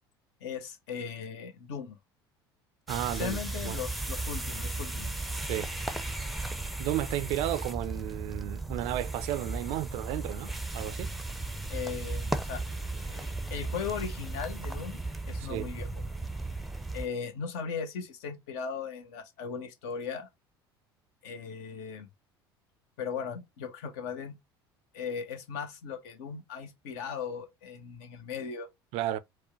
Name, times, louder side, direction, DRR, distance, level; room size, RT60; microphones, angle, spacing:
voice 1, 0.4-2.0 3.2-5.3 11.7-12.6 13.5-15.0 15.3-15.9 16.9-20.3 21.2-22.1 23.0-24.3 24.9-28.7, left 6 dB, 60° left, 0.8 m, -37 dB
sound 1, 2.9-17.1, right 2 dB, ahead, 0.6 m, -35 dB
voice 2, 2.9-3.4 3.6-3.8 5.4-5.7 6.8-11.1 15.4-15.7 28.9-29.2, right 13 dB, 55° right, 0.4 m, -33 dB
sound 2, 12.3-16.9, left 3 dB, 80° left, 1.2 m, -60 dB
4.5 x 2.1 x 3.0 m
figure-of-eight pair, 65°, 13 cm